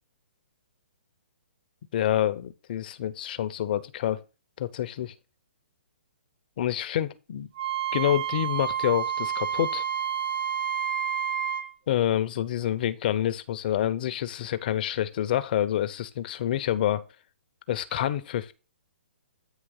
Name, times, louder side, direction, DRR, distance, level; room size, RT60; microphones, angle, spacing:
voice 1, 1.9-4.2 4.6-5.1 6.6-7.5 7.9-9.8 11.9-17.0 17.7-18.5, left 11 dB, 50° left, 0.8 m, -27 dB
Wind instrument woodwind instrument, 7.6-11.7, right 9 dB, 45° right, 1.8 m, -29 dB
9.1 x 3.2 x 6.5 m
hypercardioid pair, 135°, 6 cm